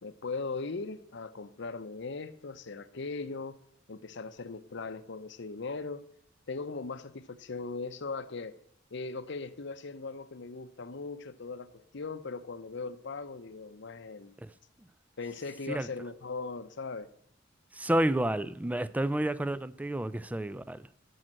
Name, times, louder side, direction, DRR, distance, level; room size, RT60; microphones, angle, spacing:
voice 1, 0.0-3.6 3.9-6.1 6.5-8.6 8.9-14.3 15.2-17.1, left 4 dB, 65° left, 0.7 m, -39 dB
voice 2, 17.7-21.0, right 1 dB, 10° right, 0.3 m, -30 dB
10.5 x 6.5 x 7.5 m
head